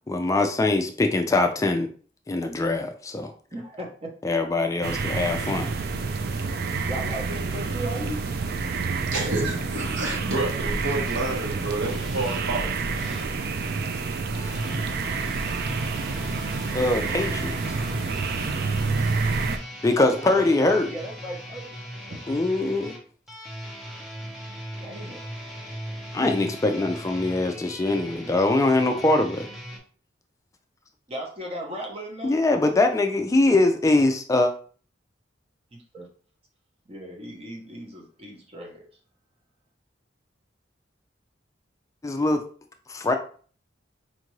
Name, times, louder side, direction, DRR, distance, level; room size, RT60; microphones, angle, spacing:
voice 1, 0.1-1.9 2.3-3.3 4.2-5.7 16.7-17.6 19.8-20.9 22.3-22.9 26.1-29.5 32.2-34.5 42.0-42.4 42.9-43.1, left 2 dB, 15° left, 0.3 m, -22 dB
voice 2, 3.5-4.1 6.8-8.2 20.0-22.2 24.8-25.3 31.1-32.4 35.7-36.1 36.9-38.9, equal, 30° right, 0.9 m, -36 dB
sound 1, 4.8-19.6, right 4 dB, 55° right, 0.4 m, -28 dB
voice 3, 8.7-13.2, right 2 dB, 85° right, 1.2 m, -30 dB
sound 2, 11.1-13.3 14.3-29.8, equal, ahead, 0.8 m, -39 dB
4.4 x 2.5 x 3.1 m
head